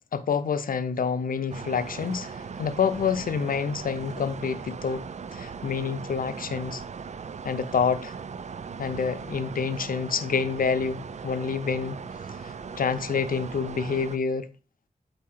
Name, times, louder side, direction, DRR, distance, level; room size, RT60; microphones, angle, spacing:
voice 1, 0.1-5.0 5.3-6.8 7.4-8.1 8.8-12.0 12.8-14.5, left 6 dB, 75° left, 0.6 m, -27 dB
sound 1, 1.5-14.2, right 6 dB, 55° right, 0.4 m, -39 dB
8.5 x 2.8 x 5.7 m
wide cardioid pair, 90°, 14 cm